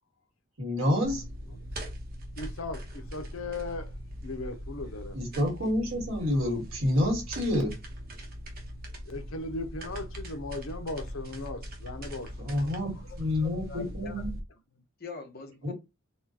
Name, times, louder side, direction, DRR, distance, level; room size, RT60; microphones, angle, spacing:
voice 1, 0.6-1.3 5.1-7.8 12.4-12.9 13.2-14.3 15.6-15.7, left 1 dB, 85° right, 1.8 m, -28 dB
sound 1, 1.0-14.4, equal, 45° right, 0.9 m, -41 dB
voice 2, 2.4-5.2 9.1-13.1, left 2 dB, 85° left, 0.7 m, -38 dB
voice 3, 13.4-14.4 15.0-15.7, left 4 dB, 50° left, 0.9 m, -43 dB
4.2 x 2.2 x 2.9 m
head